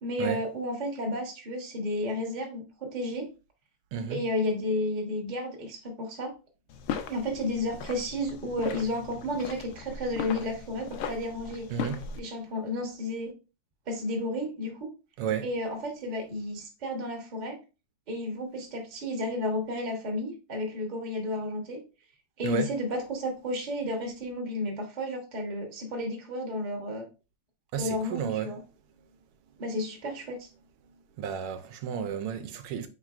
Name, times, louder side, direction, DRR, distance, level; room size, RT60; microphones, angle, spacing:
voice 1, 0.0-3.3 4.1-6.3 7.1-11.7 12.2-13.3 13.9-14.9 15.4-17.6 18.1-21.8 22.4-27.1 27.8-28.6 29.6-30.5, left 1 dB, 35° right, 0.8 m, -32 dB
voice 2, 3.9-4.2 11.7-12.1 15.2-15.5 22.4-22.7 27.7-28.5 31.2-32.9, right 7 dB, 90° right, 1.6 m, -32 dB
sound 1, 6.7-12.2, left 7 dB, 75° left, 1.3 m, -38 dB
4.4 x 4.0 x 2.4 m
omnidirectional pair, 2.4 m